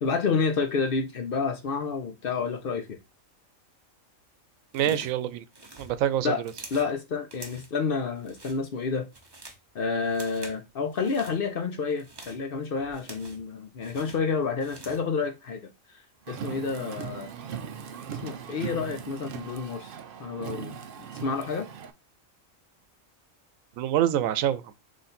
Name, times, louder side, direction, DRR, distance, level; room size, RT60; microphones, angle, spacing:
voice 1, 0.0-3.0 4.8-5.0 6.2-6.4 6.7-9.1 9.7-16.0 16.3-17.3 18.1-21.7, left 5 dB, 55° left, 0.7 m, -29 dB
sound 1, 4.7-5.2 5.5-6.9 7.3-7.8 8.2-8.6 9.0-9.7 10.1-10.6 10.9-11.4 11.9-13.5 13.8-15.1, right 2 dB, 20° right, 0.8 m, -47 dB
voice 2, 4.7-5.4 5.8-6.4 23.8-24.7, right 11 dB, 90° right, 1.0 m, -26 dB
Car, 16.3-21.9, right 7 dB, 60° right, 0.6 m, -39 dB
3.9 x 3.2 x 4.1 m
omnidirectional pair, 1.4 m